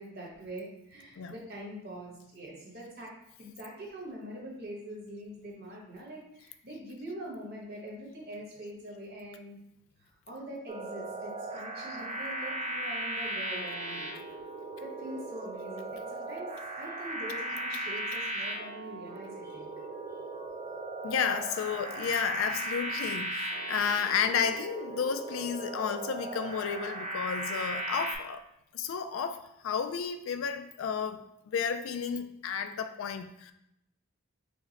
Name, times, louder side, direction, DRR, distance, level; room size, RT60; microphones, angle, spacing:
voice 1, 0.0-3.1 3.4-9.6 10.0-14.1 14.8-16.5 16.8-19.7 20.1-20.2, right 1 dB, 50° right, -3 dB, 1.2 m, -43 dB
sound 1, 10.7-28.2, right 1 dB, 35° right, 0.5 m, -37 dB
voice 2, 21.0-28.4 28.7-31.2 31.5-33.5, left 7 dB, 80° left, 9 dB, 0.3 m, -32 dB
4.7 x 2.1 x 4.0 m, 0.81 s
head